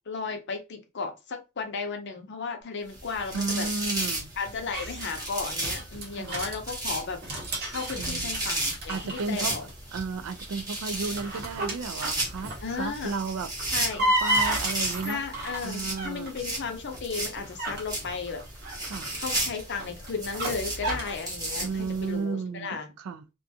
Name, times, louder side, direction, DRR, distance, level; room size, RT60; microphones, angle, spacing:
voice 1, 0.0-3.7 4.4-7.2 7.6-9.7 12.6-13.1 13.7-14.0 15.0-18.4 19.2-22.9, left 5 dB, 50° left, 0.6 m, -34 dB
sound 1, 2.9-22.1, right 1 dB, 15° right, 0.8 m, -35 dB
voice 2, 3.3-4.3 6.2-6.4 8.0-8.5 8.9-9.5 9.9-13.5 13.9-15.2 15.6-16.3 18.8-19.1 21.6-23.2, right 4 dB, 70° right, 0.4 m, -33 dB
sound 2, 4.7-6.6 7.1-9.7 10.0-10.4 11.0-12.8 13.4-16.4 16.9-21.2, right 1 dB, 45° right, 0.8 m, -32 dB
2.4 x 2.3 x 2.7 m
head